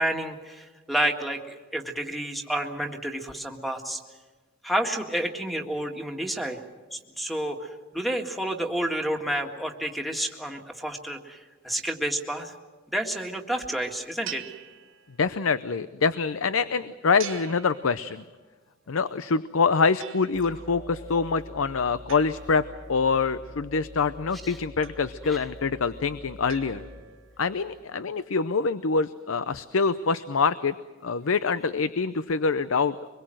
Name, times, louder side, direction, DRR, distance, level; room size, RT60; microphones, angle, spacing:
voice 1, 0.0-4.0 4.6-6.6 6.9-12.5 12.9-14.4 24.4-24.6 25.2-25.4, right 1 dB, ahead, 4 dB, 1.9 m, -30 dB
sound 1, 14.2-15.5 17.2-18.5 20.0-20.7 22.1-23.2 24.8-25.5 26.5-27.4, right 10 dB, 80° right, 1.6 m, -44 dB
voice 2, 15.2-18.2 18.9-26.9 27.4-30.7 31.0-33.0, left 4 dB, 90° left, 14 dB, 0.7 m, -25 dB
sound 2, 20.3-27.8, left 1 dB, 40° left, 7.4 m, -45 dB
25.0 x 21.5 x 7.7 m, 1.3 s
head